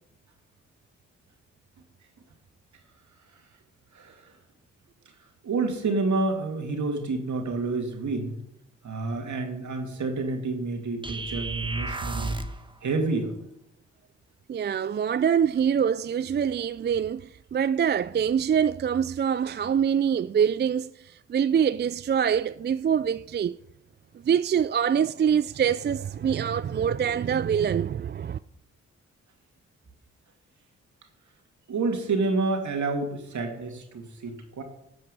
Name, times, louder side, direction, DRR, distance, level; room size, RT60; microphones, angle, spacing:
voice 1, 3.9-4.4 5.4-8.4 8.8-12.4 12.8-13.3 31.7-34.6, right 3 dB, 65° right, 2.5 m, -29 dB
sound 1, 11.0-12.6, right 2 dB, 15° right, 1.2 m, -33 dB
voice 2, 14.5-23.6 24.2-28.4, right 8 dB, 35° right, 0.4 m, -25 dB
13.5 x 7.9 x 5.4 m
supercardioid pair, 40°, 32 cm